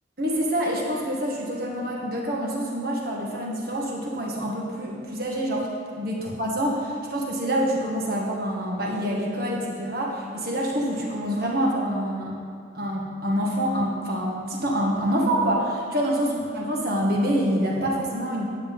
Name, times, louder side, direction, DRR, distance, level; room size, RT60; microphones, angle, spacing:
voice 1, 0.2-5.7 6.0-12.4 12.7-18.5, equal, 55° right, -2 dB, 1.8 m, -26 dB
10.5 x 7.4 x 5.4 m, 2.3 s
head